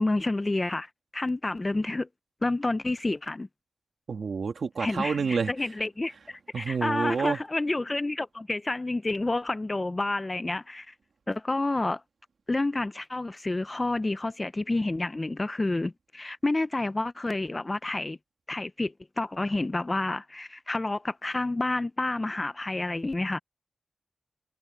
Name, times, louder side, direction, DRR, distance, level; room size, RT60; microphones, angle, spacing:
voice 1, 0.0-2.1 2.4-3.5 4.8-10.9 11.3-12.0 12.5-18.2 18.5-23.4, left 2 dB, 30° left, 0.6 m, -29 dB
voice 2, 4.1-5.5 6.5-7.4, right 5 dB, 85° right, 2.6 m, -28 dB
wide cardioid pair, 85°, 0 cm